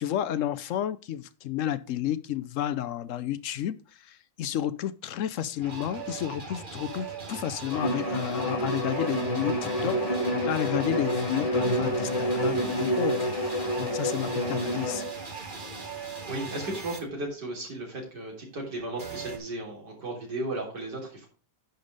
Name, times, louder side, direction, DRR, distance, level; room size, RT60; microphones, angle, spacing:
voice 1, 0.0-13.4 13.8-15.0, left 11 dB, 70° left, 14 dB, 0.7 m, -31 dB
sound 1, 5.6-17.0 19.0-19.4, right 5 dB, 30° right, 1.7 m, -39 dB
Bowed string instrument, 7.7-15.1, equal, 30° left, 0.7 m, -28 dB
voice 2, 16.3-21.3, right 2 dB, 80° right, -1 dB, 4.1 m, -35 dB
10.5 x 5.2 x 5.2 m, 0.35 s
omnidirectional pair, 1.8 m